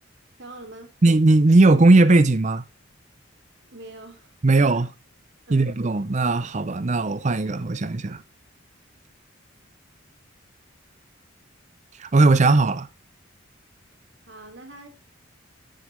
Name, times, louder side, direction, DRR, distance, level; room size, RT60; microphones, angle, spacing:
voice 1, 0.4-0.9 3.7-4.7 5.5-5.8 14.2-14.9, right 2 dB, 60° right, 2.7 m, -43 dB
voice 2, 1.0-2.6 4.4-4.9 5.5-8.2 12.0-12.9, right 2 dB, 35° right, 0.6 m, -18 dB
13.5 x 6.5 x 3.2 m
head